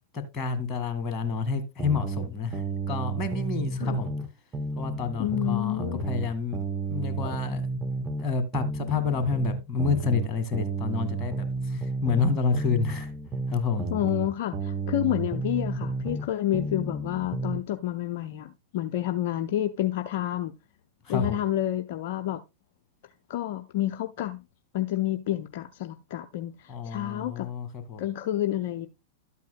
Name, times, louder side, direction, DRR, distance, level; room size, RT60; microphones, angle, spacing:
voice 1, 0.1-4.1 4.7-6.6 6.9-7.7 8.2-13.1 13.5-13.9 21.1-21.4 26.7-28.0, left 4 dB, 30° left, 1.8 m, -29 dB
sound 1, 1.8-4.3 4.5-8.3 8.5-12.3 12.5-16.3 16.5-17.6, right 3 dB, 15° right, 1.4 m, -32 dB
voice 2, 5.2-6.0 13.9-20.5 21.1-22.4 23.3-24.4 24.7-27.5 28.0-28.9, left 13 dB, 55° left, 0.6 m, -29 dB
12.0 x 8.3 x 2.2 m
figure-of-eight pair, 95°, 0 cm